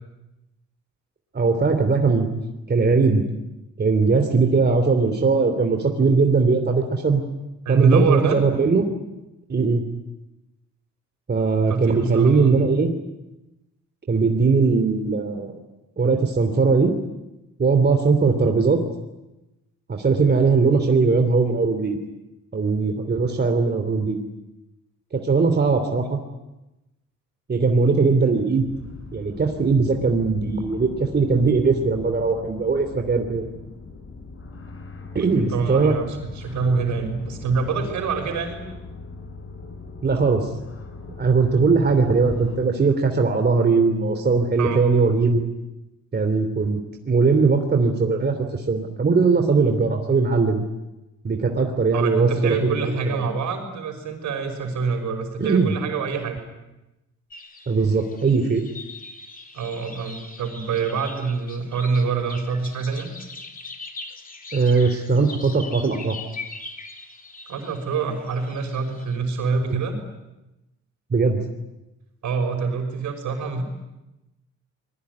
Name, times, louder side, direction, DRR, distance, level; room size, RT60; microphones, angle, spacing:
voice 1, 1.3-2.3 2.7-3.2 3.8-7.2 7.7-8.9 9.5-9.8 11.3-13.0 14.1-15.5 16.0-17.0 17.6-18.8 19.9-22.0 22.5-24.2 25.1-26.2 27.5-28.7 29.1-33.5 35.1-35.9 40.0-40.5 41.2-45.5 46.1-46.8 47.1-50.6 51.2-53.3 55.4-55.7 57.7-58.6 64.5-66.2 69.7-69.8 71.1-71.4, right 4 dB, 35° right, 5 dB, 3.2 m, -20 dB
voice 2, 7.7-8.4 11.7-12.6 35.4-38.6 41.5-41.6 44.6-44.8 51.9-56.4 59.5-63.1 67.5-70.0 72.2-73.6, right 5 dB, 70° right, 5 dB, 6.0 m, -25 dB
sound 1, 28.5-42.6, left 3 dB, 45° left, 5.7 m, -40 dB
sound 2, 57.3-69.2, left 3 dB, 30° left, 3.1 m, -41 dB
26.0 x 21.5 x 9.7 m, 0.98 s
cardioid pair, 90°, 30 cm